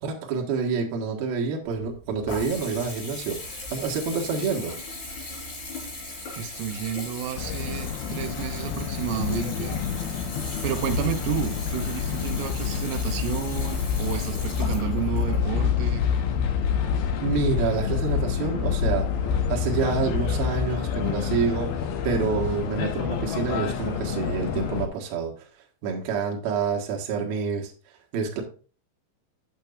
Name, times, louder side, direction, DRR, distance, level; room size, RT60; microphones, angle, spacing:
voice 1, 0.0-4.8 17.2-19.1 19.5-25.5 25.8-27.7 28.1-28.4, right 5 dB, 60° right, 1 dB, 2.9 m, -28 dB
Water tap faucet / Bathtub (filling or washing) / Trickle dribble, 1.6-16.5, left 2 dB, 40° left, 4.5 m, -38 dB
voice 2, 6.4-9.8 10.6-16.1, right 10 dB, 80° right, 7 dB, 3.4 m, -31 dB
sound 1, 7.4-24.9, left 7 dB, 75° left, 2.2 m, -27 dB
8.9 x 8.3 x 2.5 m, 0.38 s
omnidirectional pair, 5.8 m